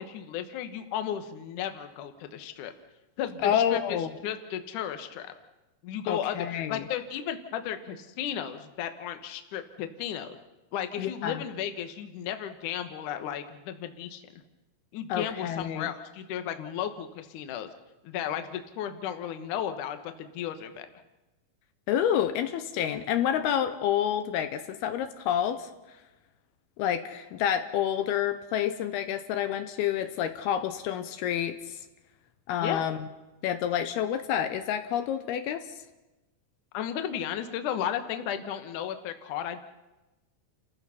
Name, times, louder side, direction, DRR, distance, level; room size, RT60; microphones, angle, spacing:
voice 1, 0.0-2.7 3.2-5.3 5.8-10.4 10.7-14.2 14.9-17.7 18.0-20.9 32.6-32.8 36.7-39.6, left 9 dB, 65° left, 8 dB, 2.3 m, -34 dB
voice 2, 3.4-4.1 6.1-6.8 11.0-11.4 15.1-15.9 21.9-25.7 26.8-31.8 32.5-33.1 33.4-35.6, left 10 dB, 80° left, 9 dB, 2.7 m, -28 dB
30.0 x 15.0 x 5.7 m, 1.0 s
omnidirectional pair, 4.6 m